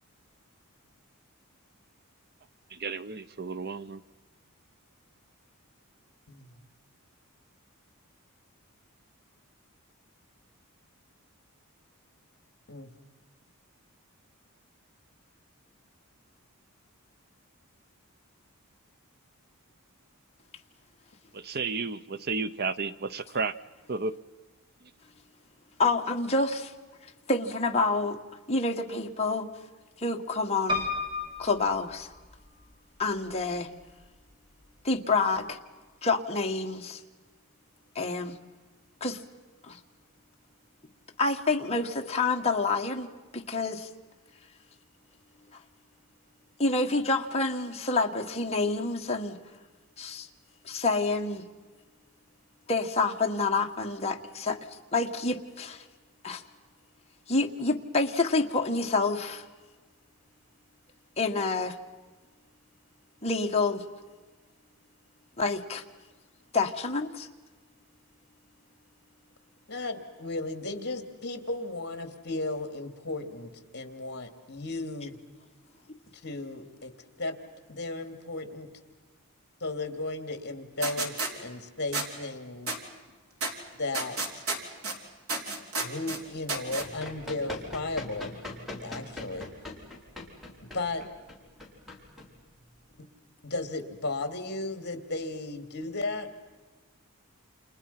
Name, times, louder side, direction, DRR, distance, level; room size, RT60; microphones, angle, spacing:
voice 1, 2.7-4.0 21.3-23.5 23.9-24.1, right 4 dB, 45° right, 14 dB, 0.7 m, -32 dB
voice 2, 25.8-26.7 27.3-28.2 28.5-29.5 30.0-30.8 31.4-32.1 33.0-33.7 34.8-35.6 36.0-37.0 38.0-38.4 39.0-39.2 39.6-39.8 41.2-43.1 43.3-43.9 46.6-49.4 50.0-50.3 50.7-51.4 52.7-54.6 54.9-55.8 56.2-56.4 57.3-59.4 61.2-61.8 63.2-63.8 65.4-65.8 66.5-67.3, left 3 dB, 30° left, 2 dB, 1.6 m, -28 dB
Piano, 30.7-32.7 33.3-34.0 34.3-34.4 34.6-34.7, left 3 dB, 20° right, 3.3 m, -33 dB
voice 3, 69.7-75.2 76.2-76.9 77.2-77.4 77.7-78.7 79.6-82.7 83.8-84.4 85.8-88.4 88.8-89.5 90.7-91.1 93.4-96.3, left 2 dB, 50° left, 8 dB, 2.7 m, -35 dB
sound 1, 80.8-81.3 81.9-82.1 82.7-82.8 83.4-83.5 83.9-85.0 85.3-86.2 86.5-86.8, right 3 dB, 70° right, 3.8 m, -31 dB
Run, 86.8-92.9, left 2 dB, ahead, 4.7 m, -42 dB
30.0 x 28.5 x 5.8 m, 1.3 s
head